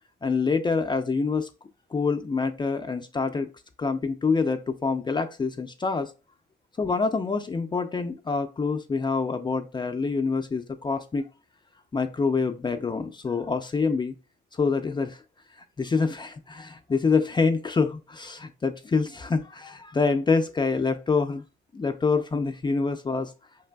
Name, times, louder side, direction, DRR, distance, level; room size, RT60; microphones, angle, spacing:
voice 1, 0.2-1.5 1.9-3.5 3.8-6.1 6.8-11.3 11.9-14.1 14.5-15.2 15.8-21.4 21.7-23.3, left 4 dB, 25° left, 0.4 m, -26 dB
4.8 x 3.3 x 2.2 m
cardioid pair, 90°, 20 cm